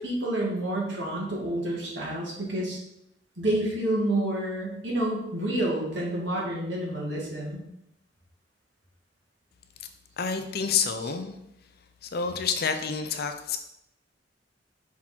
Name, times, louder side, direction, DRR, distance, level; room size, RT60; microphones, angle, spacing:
voice 1, 0.0-2.8 3.4-7.6 11.0-11.1, right 1 dB, 75° right, -4 dB, 2.0 m, -29 dB
voice 2, 10.2-11.3 12.0-13.6, left 6 dB, 60° left, 7 dB, 0.6 m, -28 dB
5.9 x 3.7 x 4.4 m, 0.82 s
head